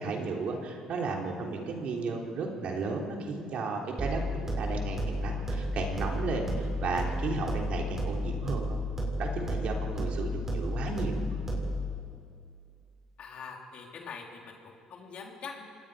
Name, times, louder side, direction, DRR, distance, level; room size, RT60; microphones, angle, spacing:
voice 1, 0.0-8.8 9.2-11.2, right 4 dB, 60° right, 1 dB, 3.6 m, -34 dB
sound 1, 4.0-12.0, left 1 dB, 20° right, 6.9 m, -32 dB
voice 2, 13.2-14.5 14.9-15.6, left 5 dB, 55° left, 0 dB, 3.8 m, -43 dB
26.5 x 19.0 x 5.1 m, 2.3 s
supercardioid pair, 70°, 2 cm